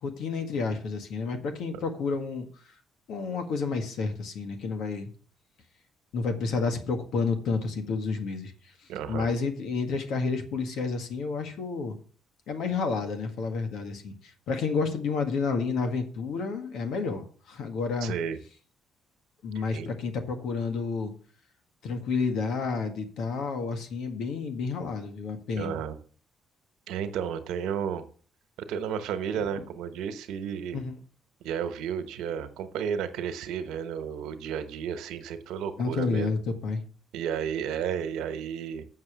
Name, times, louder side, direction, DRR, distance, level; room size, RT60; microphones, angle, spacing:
voice 1, 0.0-2.5 3.1-5.1 6.1-8.5 9.1-12.0 12.5-18.1 19.4-21.1 21.8-25.8 30.7-31.0 35.8-36.8, left 4 dB, 80° left, 6 dB, 1.7 m, -30 dB
voice 2, 8.9-9.3 18.0-18.4 19.7-19.9 25.5-26.0 26.9-28.1 28.7-30.8 31.4-36.4 37.1-38.9, right 8 dB, 85° right, 10 dB, 1.1 m, -32 dB
7.5 x 6.4 x 7.4 m, 0.43 s
cardioid pair, 75°, 0 cm